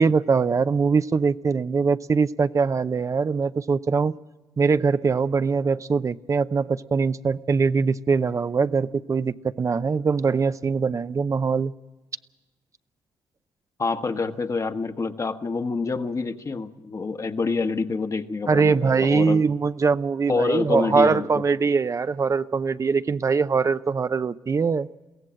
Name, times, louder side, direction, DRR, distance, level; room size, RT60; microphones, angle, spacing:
voice 1, 0.0-4.1 4.6-11.7 18.5-24.9, right 5 dB, 40° right, 13 dB, 0.6 m, -22 dB
voice 2, 13.8-19.4 20.3-21.4, left 4 dB, 40° left, 8 dB, 1.4 m, -27 dB
22.5 x 16.5 x 7.5 m, 1.2 s
supercardioid pair, 50°, 8 cm